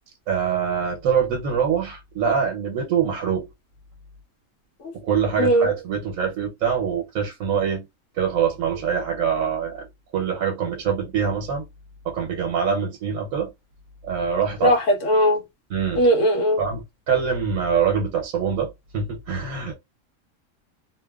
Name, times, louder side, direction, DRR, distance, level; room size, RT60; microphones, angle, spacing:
voice 1, 0.3-3.5 4.9-7.9 8.1-9.9 10.1-11.6 12.0-13.5 14.0-14.7 15.7-16.1 16.6-19.7, right 7 dB, 90° right, 1.1 m, -24 dB
voice 2, 5.4-5.7 14.6-15.4 16.0-16.6, equal, 70° left, 1.1 m, -19 dB
2.8 x 2.1 x 2.2 m
omnidirectional pair, 1.4 m